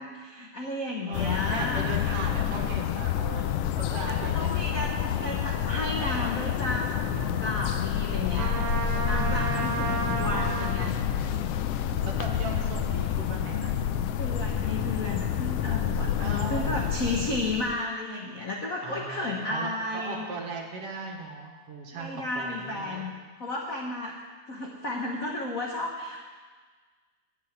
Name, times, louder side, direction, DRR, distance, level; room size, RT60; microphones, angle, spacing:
voice 1, 0.0-1.9 3.9-8.6 9.0-11.0 14.2-20.3 21.9-23.1 23.4-24.2 24.5-26.3, left 2 dB, 60° left, -1 dB, 0.8 m, -33 dB
sound 1, 1.1-17.8, left 9 dB, 85° left, 1.4 m, -28 dB
voice 2, 1.1-4.5 6.0-6.3 8.2-9.3 12.0-13.9 16.2-16.9 18.8-23.1, right 3 dB, 60° right, 1 dB, 2.3 m, -39 dB
Trumpet, 8.4-10.9, right 4 dB, 90° right, 2.4 m, -32 dB
9.6 x 8.3 x 9.3 m, 1.5 s
omnidirectional pair, 3.3 m